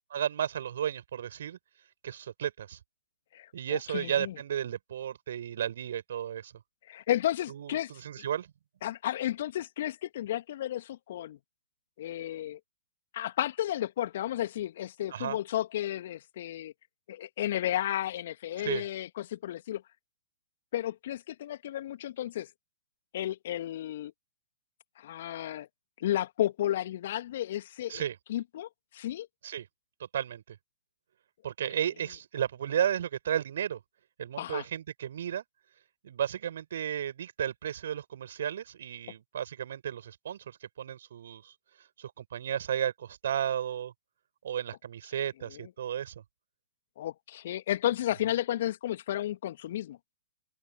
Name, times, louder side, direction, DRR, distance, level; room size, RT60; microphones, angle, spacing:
voice 1, 0.1-1.6 2.0-2.8 3.5-6.5 7.5-8.5 15.1-15.4 18.6-18.8 27.9-28.2 29.4-29.7 30.0-30.6 31.4-33.8 34.2-35.4 36.0-41.5 42.0-43.9 44.4-46.1, right 9 dB, 55° right, 5.1 m, -33 dB
voice 2, 3.3-4.3 6.9-7.9 8.2-8.3 8.8-11.4 12.0-12.6 13.1-16.7 17.1-19.8 20.7-22.5 23.1-24.1 25.0-25.7 26.0-28.0 28.3-29.3 34.4-34.6 45.5-45.7 47.0-50.0, left 12 dB, 50° left, 2.0 m, -33 dB
open air
figure-of-eight pair, 120°, 0 cm